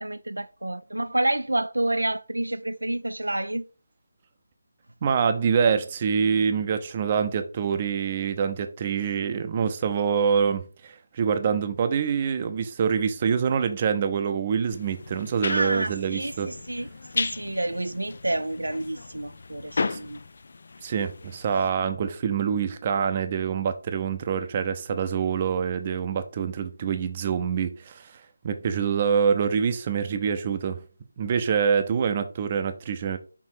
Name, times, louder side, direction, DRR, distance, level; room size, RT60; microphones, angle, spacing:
voice 1, 0.0-3.6 15.5-16.9 17.1-20.2, right 1 dB, 70° right, 0.3 m, -29 dB
voice 2, 5.0-16.5 19.9-20.0 20.8-28.0 28.4-30.8 31.2-33.2, right 6 dB, 25° right, 0.6 m, -25 dB
sound 1, 14.7-21.7, left 4 dB, 45° left, 0.4 m, -35 dB
6.1 x 3.5 x 4.6 m
figure-of-eight pair, 155°, 0 cm